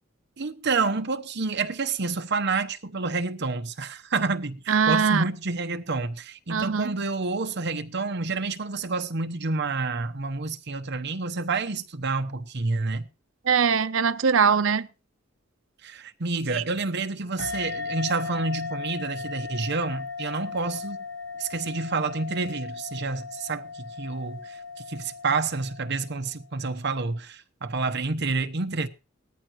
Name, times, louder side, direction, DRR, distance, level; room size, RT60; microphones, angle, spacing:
voice 1, 0.4-13.1 15.8-21.0 21.4-24.6 24.9-28.9, right 3 dB, 60° right, 1.0 m, -29 dB
voice 2, 4.7-5.3 6.5-7.0 13.4-14.9 16.5-16.6, right 6 dB, 75° right, 0.7 m, -22 dB
sound 1, 17.4-26.4, left 4 dB, 65° left, 1.1 m, -37 dB
18.5 x 14.0 x 3.1 m
head